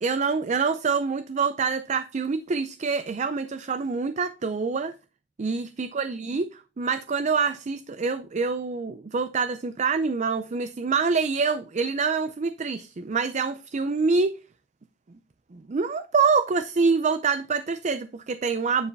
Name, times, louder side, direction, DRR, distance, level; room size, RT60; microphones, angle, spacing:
voice 1, 0.0-4.9 5.4-14.4 15.5-18.9, right 5 dB, 40° right, 0.4 m, -26 dB
10.0 x 4.7 x 3.4 m
head